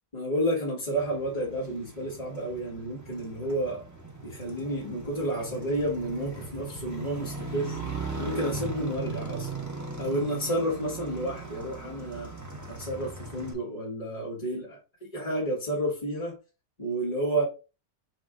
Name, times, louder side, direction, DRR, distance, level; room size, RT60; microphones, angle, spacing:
voice 1, 0.1-3.8 4.2-7.8 8.2-9.5 10.0-12.3 12.7-14.8 15.1-16.4 16.8-17.4, right 1 dB, 25° left, 1.2 m, -30 dB
Motorcycle, 1.0-13.5, right 3 dB, 20° right, 0.4 m, -39 dB
5.6 x 2.5 x 3.6 m
omnidirectional pair, 1.8 m